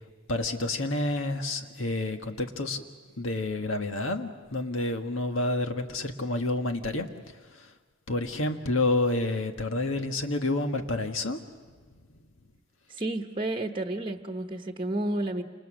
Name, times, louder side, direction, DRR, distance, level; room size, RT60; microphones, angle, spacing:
voice 1, 0.3-2.8 3.2-7.1 7.6-7.7 8.1-11.4, left 2 dB, 75° left, 5 dB, 1.7 m, -29 dB
voice 2, 12.9-15.4, right 1 dB, 25° right, 4 dB, 1.1 m, -31 dB
29.0 x 27.5 x 6.4 m, 1.5 s
head